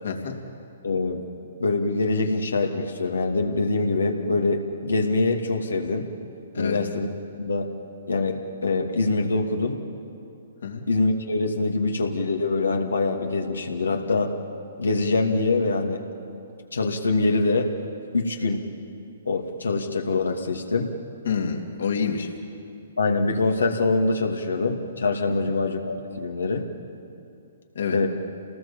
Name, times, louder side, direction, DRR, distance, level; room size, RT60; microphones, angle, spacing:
voice 1, 0.0-0.4 6.5-6.8 10.6-10.8 21.2-22.3 25.4-25.5 27.7-28.0, left 6 dB, 70° left, 2 dB, 3.1 m, -27 dB
voice 2, 0.8-1.2 1.6-6.1 6.6-7.1 7.4-7.7 8.1-9.8 10.9-14.3 14.8-16.0 16.7-17.7 18.1-18.6 19.3-20.9 23.0-26.7 27.9-28.1, left 3 dB, 85° left, 2 dB, 2.5 m, -24 dB
28.0 x 19.5 x 7.3 m, 2.7 s
hypercardioid pair, 130°, 0 cm